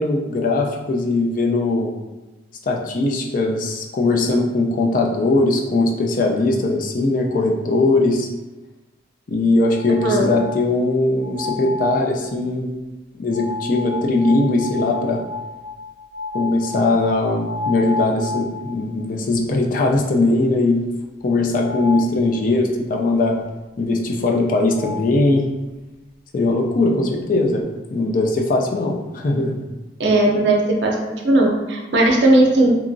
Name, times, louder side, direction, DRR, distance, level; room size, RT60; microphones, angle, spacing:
voice 1, 0.0-1.9 2.7-8.3 9.3-12.7 13.1-15.2 16.3-20.8 21.2-23.4 23.8-25.4 26.3-27.6 27.9-29.6, left 2 dB, 50° left, 1 dB, 0.4 m, -20 dB
sound 1, 9.7-10.7 11.2-12.1 13.3-18.9 19.3-19.4 19.9-20.0 21.6-22.1 24.4-24.5 24.7-25.1, left 4 dB, 75° left, 0.8 m, -31 dB
voice 2, 30.0-32.8, right 1 dB, 70° right, 0 dB, 0.5 m, -17 dB
2.9 x 2.3 x 2.5 m, 1.1 s
head